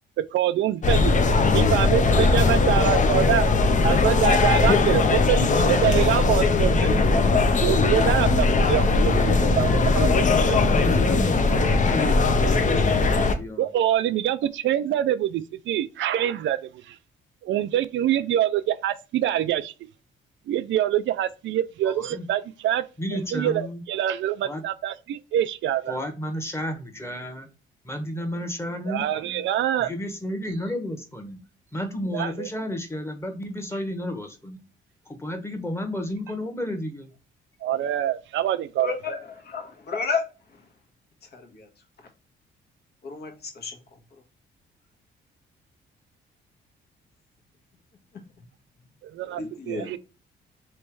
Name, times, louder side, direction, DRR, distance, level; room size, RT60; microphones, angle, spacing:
voice 1, 0.3-1.1 1.5-3.5 3.8-6.9 7.6-10.6 13.6-17.0 17.4-19.7 20.5-22.8 23.1-26.0 28.9-29.9 32.1-32.5 37.6-39.0 49.0-50.0, right 11 dB, 70° right, 0.4 m, -25 dB
sound 1, 0.8-13.3, left 3 dB, 40° left, 0.7 m, -20 dB
voice 2, 9.3-9.9 10.5-13.7 21.9-22.3 23.0-23.8 24.4-24.6 25.9-27.5 27.8-29.5 29.8-31.4 31.7-34.6 35.1-37.1, left 1 dB, 10° left, 1.2 m, -32 dB
voice 3, 38.8-39.2 39.5-40.2 41.3-41.6 43.0-43.3 43.6-43.7 49.4-50.0, left 5 dB, 55° left, 1.3 m, -30 dB
3.3 x 3.1 x 4.5 m
cardioid pair, 90°, 20 cm